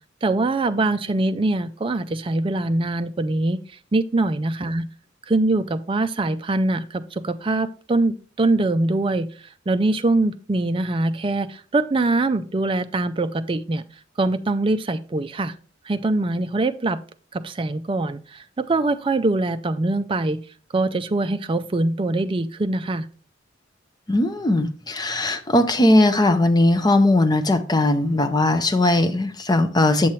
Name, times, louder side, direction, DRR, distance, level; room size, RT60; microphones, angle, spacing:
voice 1, 0.2-3.6 3.9-4.9 5.3-9.3 9.7-13.8 14.2-15.5 15.9-17.0 17.3-20.4 20.7-23.1, right 2 dB, 25° right, 0.4 m, -23 dB
voice 2, 24.1-30.1, left 1 dB, 20° left, 0.5 m, -19 dB
7.6 x 7.1 x 3.1 m
head